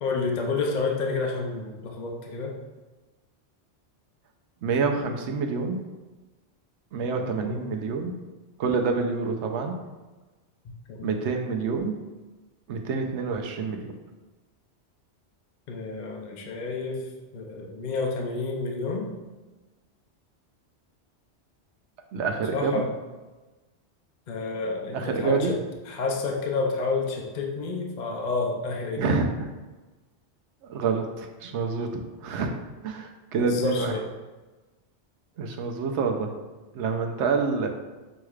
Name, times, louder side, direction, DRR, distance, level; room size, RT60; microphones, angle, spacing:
voice 1, 0.0-2.6 7.3-7.7 10.6-11.4 15.7-17.1 17.3-19.1 22.5-22.9 24.3-25.6 25.9-29.2 33.4-34.1, left 3 dB, 50° left, 1 dB, 0.6 m, -29 dB
voice 2, 4.6-5.8 6.9-8.1 8.6-9.8 11.0-12.0 12.7-13.9 22.1-22.8 24.9-25.5 29.0-29.3 30.7-32.5 32.8-33.9 35.4-36.3 36.7-37.7, right 4 dB, 85° right, 4 dB, 0.9 m, -27 dB
6.5 x 3.1 x 2.3 m, 1.2 s
omnidirectional pair, 1.2 m